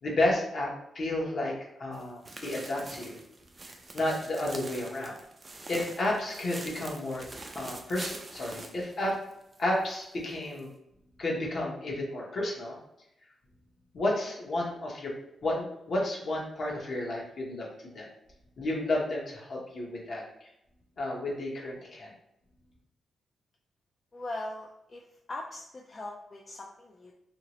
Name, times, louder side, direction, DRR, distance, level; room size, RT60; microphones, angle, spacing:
voice 1, 0.0-3.2 3.7-5.2 5.7-7.2 7.5-9.2 9.6-10.7 11.2-12.8 13.9-15.1 15.4-18.1 18.6-20.5 21.0-22.1, left 1 dB, 55° left, -3 dB, 1.0 m, -32 dB
sound 1, 1.9-9.6 9.9-10.0 10.6-10.7, right 2 dB, 30° right, 0.4 m, -44 dB
voice 2, 24.1-25.0 25.3-27.1, left 2 dB, 35° left, -1 dB, 0.4 m, -40 dB
2.8 x 2.8 x 3.0 m, 0.79 s
cardioid pair, 120°, 0 cm